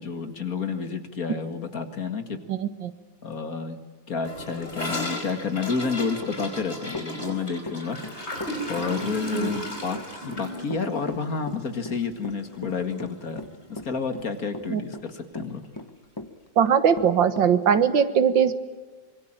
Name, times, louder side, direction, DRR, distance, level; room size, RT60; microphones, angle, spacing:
voice 1, 0.0-2.4 3.2-3.8 4.1-8.0 8.7-13.4 13.7-15.6, left 5 dB, 50° left, 8 dB, 2.4 m, -30 dB
voice 2, 2.5-2.9 9.3-9.5 14.7-14.8 16.6-18.5, right 8 dB, 80° right, 11 dB, 2.1 m, -20 dB
Gurgling / Toilet flush, 4.2-12.5 12.8-12.9 13.2-13.6 13.9-14.0 14.3-14.4 15.4-15.5, left 1 dB, 35° left, 5.4 m, -35 dB
Run / Walk footsteps, 6.2-17.9, left 1 dB, 15° left, 1.2 m, -38 dB
sound 1, 10.2-15.1, left 3 dB, 65° right, 5.1 m, -46 dB
25.5 x 23.5 x 8.9 m, 1.4 s
omnidirectional pair, 2.0 m